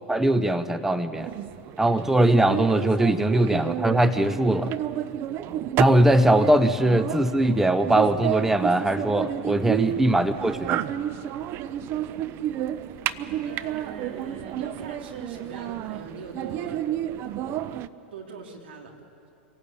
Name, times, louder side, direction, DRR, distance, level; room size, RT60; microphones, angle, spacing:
voice 1, 0.1-1.3 1.8-4.7 5.8-10.8, right 1 dB, 5° right, 13 dB, 0.7 m, -21 dB
voice 2, 1.1-1.8 4.4-5.8 13.4-16.8 18.1-18.9, right 5 dB, 75° right, 1 dB, 3.7 m, -43 dB
sound 1, 1.2-17.9, right 11 dB, 45° right, 0.8 m, -31 dB
26.5 x 18.0 x 8.6 m, 2.7 s
hypercardioid pair, 100°, 6 cm